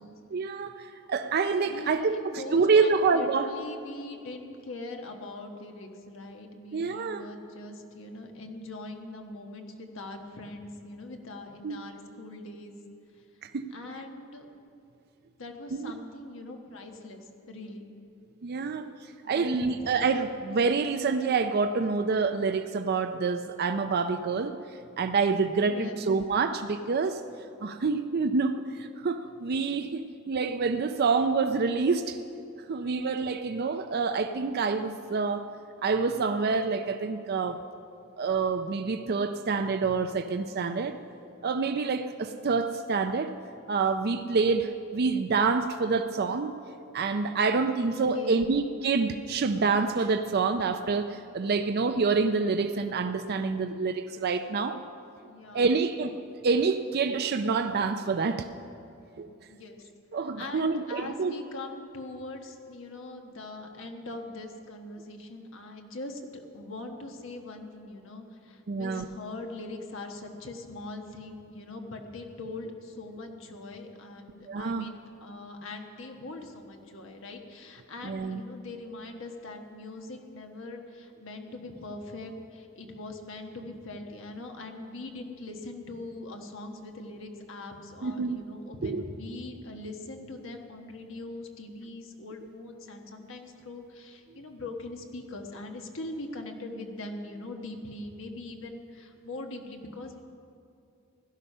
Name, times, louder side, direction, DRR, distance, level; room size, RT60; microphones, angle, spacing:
voice 1, 0.3-3.5 6.7-7.2 11.6-11.8 13.4-13.7 15.7-15.9 18.4-18.8 19.3-24.6 25.0-27.2 27.6-32.2 32.7-35.5 35.8-37.6 38.2-40.9 41.4-43.3 43.7-46.5 46.9-54.8 55.5-56.2 56.4-58.5 59.2-59.3 60.1-61.4 68.7-69.1 74.5-74.9 78.0-78.4 88.0-88.4 88.8-89.0, right 4 dB, 50° right, 8 dB, 0.5 m, -27 dB
voice 2, 1.6-12.7 13.7-14.5 15.4-17.9 19.3-20.0 25.6-26.0 47.8-48.5 55.3-55.7 59.5-59.8 60.4-100.2, left 2 dB, 70° left, 3 dB, 1.4 m, -42 dB
17.0 x 12.5 x 5.5 m, 2.6 s
head